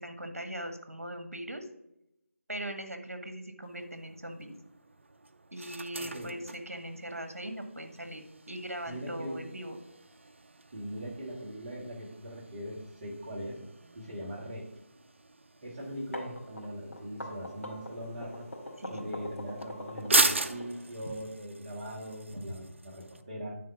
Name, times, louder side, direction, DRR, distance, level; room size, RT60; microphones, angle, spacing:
voice 1, 0.0-1.7 2.5-4.5 5.5-9.8 18.8-19.1 22.3-22.4, right 1 dB, 75° right, 6 dB, 1.4 m, -40 dB
sound 1, 3.6-23.2, right 3 dB, 55° right, 0.6 m, -38 dB
voice 2, 6.0-6.3 8.9-9.4 10.7-13.6 13.9-14.7 15.6-18.5 18.9-23.6, equal, 25° right, -3 dB, 1.8 m, -40 dB
sound 2, 15.9-21.1, left 1 dB, 75° left, 2.4 m, -42 dB
9.4 x 3.8 x 5.9 m, 0.83 s
figure-of-eight pair, 160°, 8 cm